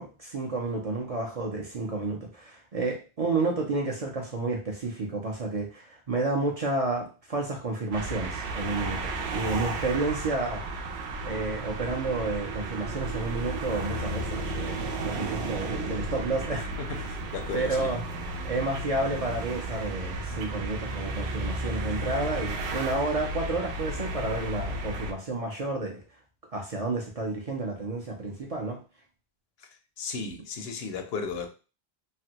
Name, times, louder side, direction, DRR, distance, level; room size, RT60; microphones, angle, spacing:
voice 1, 0.0-10.6 11.2-17.1 17.5-18.0 18.4-26.0 26.5-28.8, right 3 dB, 45° right, 0 dB, 0.5 m, -31 dB
sound 1, 7.9-25.1, right 2 dB, 85° right, 0.9 m, -33 dB
voice 2, 16.8-17.9 30.0-31.5, left 5 dB, 75° left, 6 dB, 0.8 m, -35 dB
3.3 x 2.2 x 2.8 m, 0.33 s
omnidirectional pair, 1.1 m